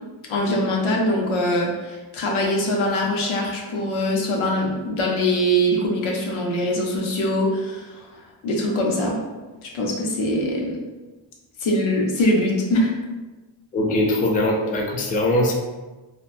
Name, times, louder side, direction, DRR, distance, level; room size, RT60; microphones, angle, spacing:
voice 1, 0.3-8.0 8.4-9.2 9.6-10.8 11.6-12.9, equal, 85° left, -1 dB, 0.7 m, -22 dB
voice 2, 13.7-15.5, left 1 dB, 20° left, 0 dB, 0.3 m, -21 dB
2.8 x 2.1 x 2.5 m, 1.2 s
cardioid pair, 100°, 47 cm